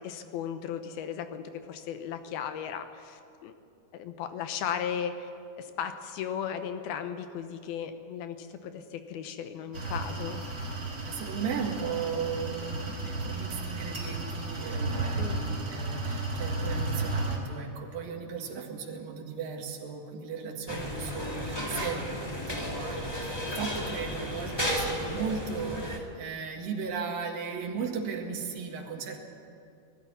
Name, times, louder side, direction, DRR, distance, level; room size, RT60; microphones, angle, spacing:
voice 1, 0.0-3.5 3.9-5.3 5.6-10.4 15.2-15.4, left 8 dB, 75° left, 8 dB, 2.7 m, -36 dB
sound 1, 9.7-17.4, right 2 dB, 25° right, 4.3 m, -33 dB
voice 2, 11.0-29.2, right 6 dB, 60° right, 1 dB, 3.4 m, -36 dB
sound 2, 20.7-26.0, equal, 15° left, 0.8 m, -33 dB
19.5 x 13.5 x 9.8 m, 2.4 s
omnidirectional pair, 4.7 m